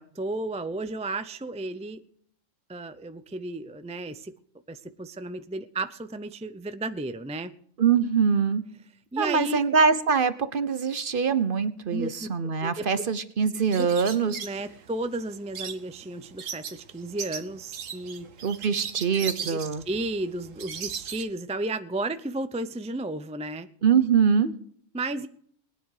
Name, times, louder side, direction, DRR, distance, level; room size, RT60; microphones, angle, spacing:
voice 1, 0.0-2.0 2.7-4.3 4.7-7.5 9.1-9.6 11.9-12.3 12.6-12.9 13.8-13.9 14.4-18.3 19.4-23.7 24.9-25.3, right 2 dB, 10° right, 11 dB, 0.4 m, -33 dB
voice 2, 7.8-8.6 9.2-14.4 18.4-19.8 23.8-24.5, right 6 dB, 45° right, 13 dB, 1.0 m, -23 dB
sound 1, 13.7-21.2, right 7 dB, 75° right, 1.5 m, -38 dB
20.5 x 9.8 x 4.9 m, 0.64 s
omnidirectional pair, 1.4 m